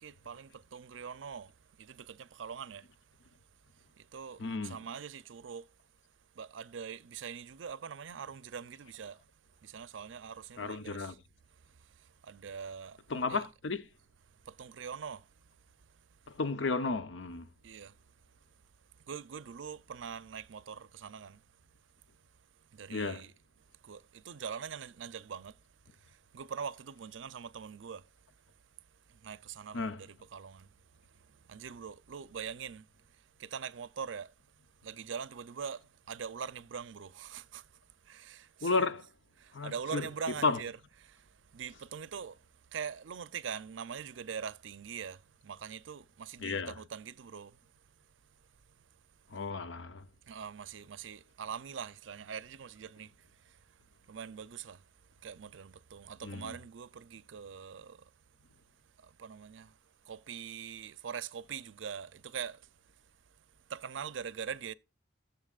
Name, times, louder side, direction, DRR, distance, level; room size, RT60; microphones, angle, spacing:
voice 1, 0.0-1.5 1.8-2.9 4.0-5.7 6.4-9.2 9.6-11.2 12.0-13.0 13.3-13.4 14.5-15.3 17.6-17.9 19.1-21.4 22.7-23.3 23.8-25.6 26.1-28.0 29.1-30.7 31.5-32.9 33.4-34.3 34.8-37.7 38.1-38.9 39.4-42.4 42.7-47.6 50.3-53.1 53.5-53.6 54.1-54.8 55.2-58.1 59.0-59.7 60.1-62.6 63.7-64.7, right 6 dB, 80° right, 0.5 m, -43 dB
voice 2, 4.4-4.8 10.6-11.1 13.1-13.8 16.4-17.5 22.9-23.2 29.7-30.0 38.6-39.0 39.5-40.1 40.4-40.6 46.4-46.7 49.3-50.0 56.2-56.5, left 3 dB, 75° left, 0.7 m, -33 dB
16.5 x 7.1 x 2.4 m
head